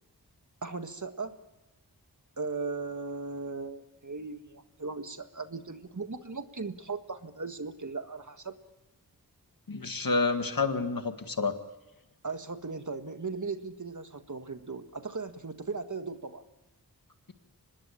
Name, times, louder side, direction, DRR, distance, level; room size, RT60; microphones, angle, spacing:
voice 1, 0.6-1.4 2.4-8.6 12.2-16.4, right 4 dB, 50° right, 8 dB, 1.7 m, -37 dB
voice 2, 9.7-11.6, left 3 dB, 60° left, 8 dB, 1.9 m, -29 dB
25.0 x 20.5 x 8.5 m, 1.0 s
wide cardioid pair, 45°, 38 cm